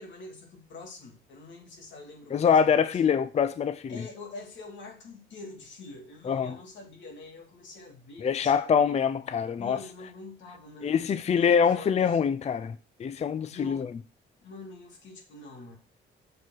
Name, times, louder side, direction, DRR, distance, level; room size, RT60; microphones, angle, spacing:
voice 1, 0.0-3.0 3.9-9.0 9.6-12.2 13.5-13.9 14.4-15.8, left 3 dB, 70° left, 2.3 m, -46 dB
voice 2, 2.3-3.9 6.3-6.6 8.2-9.8 10.8-13.9, left 7 dB, 35° left, 0.4 m, -24 dB
6.6 x 4.2 x 6.1 m
cardioid pair, 90°, 20 cm